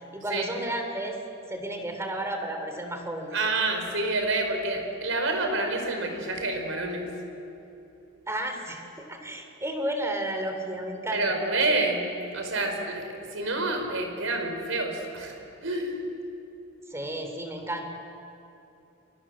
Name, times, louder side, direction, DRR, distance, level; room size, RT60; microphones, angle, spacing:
voice 1, 0.1-1.2 1.5-3.4 8.3-11.4 16.9-17.9, right 1 dB, 15° right, 4 dB, 3.3 m, -32 dB
voice 2, 3.3-7.1 11.1-12.0 12.3-16.0, right 2 dB, 75° right, 4 dB, 4.8 m, -28 dB
28.0 x 24.0 x 7.6 m, 2.8 s
head